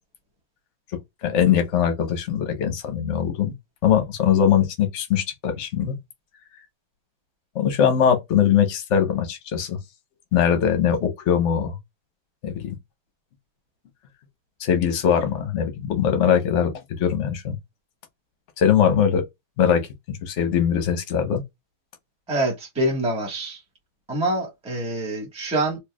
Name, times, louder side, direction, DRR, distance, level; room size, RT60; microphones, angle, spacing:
voice 1, 1.2-3.5 3.8-6.0 7.5-9.8 10.3-11.7 12.4-12.7 14.6-17.6 18.6-19.2 19.6-19.8 20.1-21.4, left 8 dB, 50° left, 0.9 m, -21 dB
voice 2, 22.3-23.6 24.1-25.8, right 1 dB, 5° right, 1.0 m, -25 dB
4.5 x 2.7 x 2.3 m
omnidirectional pair, 2.1 m